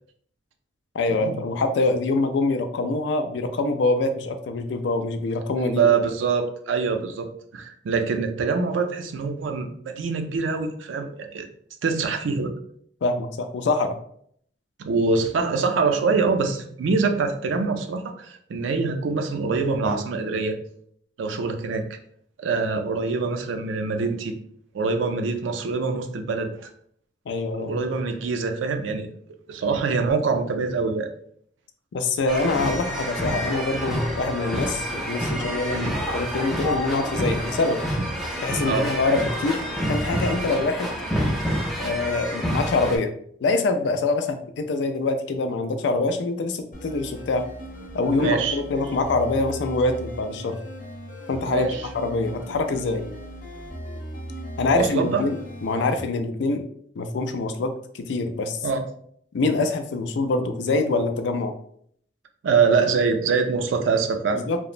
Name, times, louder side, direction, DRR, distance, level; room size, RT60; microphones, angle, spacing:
voice 1, 0.9-5.9 13.0-14.0 27.3-27.7 31.9-37.8 38.4-40.9 41.8-43.1 43.4-47.5 47.9-50.6 51.3-51.7 51.9-53.1 54.6-56.6 57.0-58.6 59.3-61.5 64.3-64.6, left 3 dB, 65° left, 8 dB, 0.3 m, -25 dB
voice 2, 5.6-11.5 11.8-12.5 14.8-20.6 21.2-21.8 22.4-24.3 24.7-26.7 27.6-29.1 29.5-31.1 35.7-35.9 38.6-38.9 48.1-48.6 51.5-51.8 54.7-55.2 58.6-58.8 62.4-64.4, right 4 dB, 85° right, 6 dB, 0.4 m, -24 dB
sound 1, 32.3-43.0, equal, ahead, 0.5 m, -28 dB
sound 2, 46.7-56.0, equal, 45° left, 0.7 m, -38 dB
2.9 x 2.0 x 2.4 m, 0.64 s
head